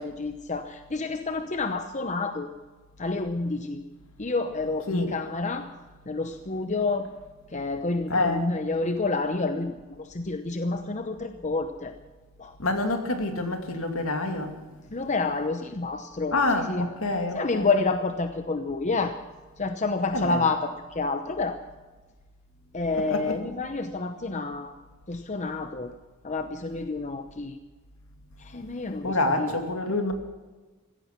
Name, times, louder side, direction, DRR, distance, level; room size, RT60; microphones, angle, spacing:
voice 1, 0.0-2.5 3.0-3.8 4.2-5.7 6.1-7.1 7.5-11.9 12.4-12.5 14.9-16.9 17.3-19.2 19.6-21.6 22.7-24.7 25.1-25.9 26.2-27.6 28.4-29.6, left 3 dB, 35° left, 7 dB, 0.8 m, -29 dB
voice 2, 8.1-8.5 12.6-14.5 16.3-17.7 20.1-20.4 23.1-23.3 29.0-30.1, left 2 dB, 70° left, 5 dB, 2.4 m, -27 dB
16.0 x 15.0 x 6.0 m, 1.2 s
head